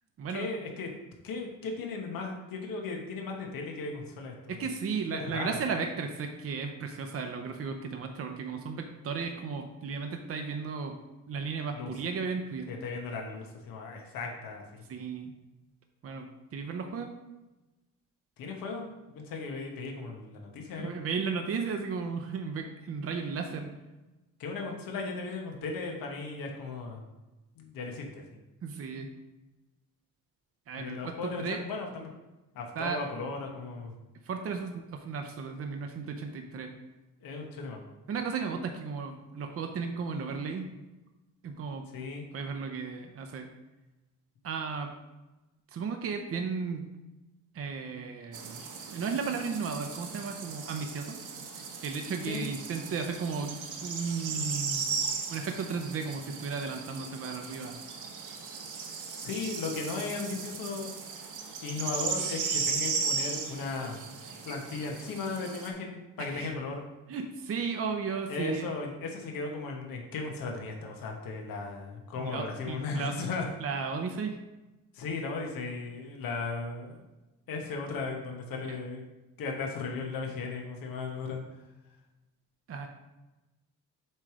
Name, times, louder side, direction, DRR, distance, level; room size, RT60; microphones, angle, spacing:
voice 1, 0.3-0.9 1.2-4.7 5.1-5.6 11.7-11.9 12.7-14.9 18.4-21.0 24.4-27.0 27.6-28.2 30.7-32.1 32.5-33.9 37.2-37.8 41.9-42.2 52.3-52.5 59.2-60.9 61.6-64.0 64.4-66.8 68.3-73.5 74.9-77.0 77.5-79.0 79.4-81.4, left 4 dB, 80° left, 1 dB, 1.3 m, -36 dB
voice 2, 4.5-11.0 11.3-12.7 14.9-15.3 16.0-16.3 16.5-17.1 20.8-23.7 28.6-29.1 30.7-31.6 32.8-33.0 34.2-36.7 38.1-40.7 41.4-41.9 42.3-43.5 44.4-44.9 45.7-46.9 47.5-51.2 51.8-53.5 53.8-54.9 55.3-57.8 66.2-66.5 67.1-68.7 72.2-73.1 73.6-74.4 78.7-78.8 82.7-82.9, right 5 dB, 40° right, 4 dB, 0.7 m, -34 dB
sound 1, 48.3-65.7, right 5 dB, 65° right, 1.1 m, -36 dB
7.6 x 3.2 x 4.9 m, 1.1 s
cardioid pair, 115°, 34 cm